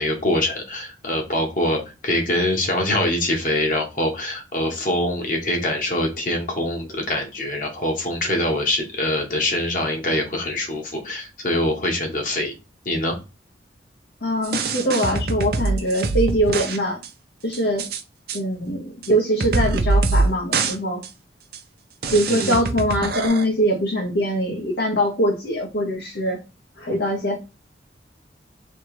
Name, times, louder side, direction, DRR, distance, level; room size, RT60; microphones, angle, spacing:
voice 1, 0.0-12.5 12.8-13.1 22.3-22.6, left 1 dB, 45° left, 2 dB, 1.3 m, -24 dB
voice 2, 14.2-17.0 17.4-17.9 18.3-21.0 22.1-26.4 26.8-27.4, equal, 75° left, -2 dB, 1.2 m, -22 dB
sound 1, 14.4-16.8 17.0-17.1 17.5-18.0 18.3-18.4 19.0-19.1 19.4-20.3 20.5-20.7 21.0-21.1 21.5-21.6 22.0-23.4, right 3 dB, 55° right, 0.7 m, -23 dB
3.3 x 3.0 x 4.7 m, 0.29 s
head